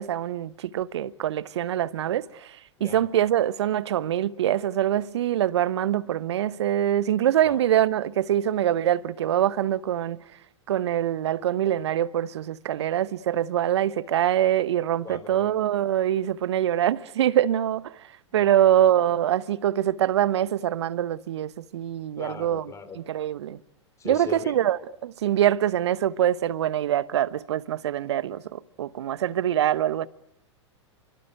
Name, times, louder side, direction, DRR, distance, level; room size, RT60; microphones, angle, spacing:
voice 1, 0.0-10.2 10.7-17.9 18.3-22.6 22.9-23.6 24.0-30.1, right 11 dB, 65° right, 1.0 m, -24 dB
voice 2, 15.0-15.6 18.3-18.6 22.2-23.0 24.0-24.5, left 5 dB, 20° left, 4.6 m, -39 dB
28.0 x 24.0 x 7.9 m
figure-of-eight pair, 100°, 15 cm